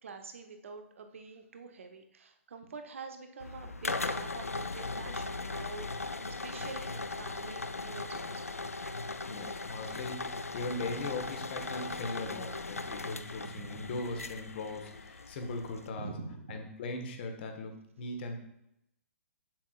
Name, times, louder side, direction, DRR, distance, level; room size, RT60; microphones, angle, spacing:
voice 1, 0.0-8.7 13.4-14.0 16.0-16.7, right 4 dB, 65° right, 6 dB, 0.9 m, -46 dB
sound 1, 3.4-15.9, left 3 dB, 85° left, 0.4 m, -38 dB
voice 2, 9.3-16.1 16.5-18.4, left 2 dB, 45° left, 5 dB, 1.3 m, -39 dB
7.4 x 7.3 x 2.5 m, 0.80 s
figure-of-eight pair, 120°, 8 cm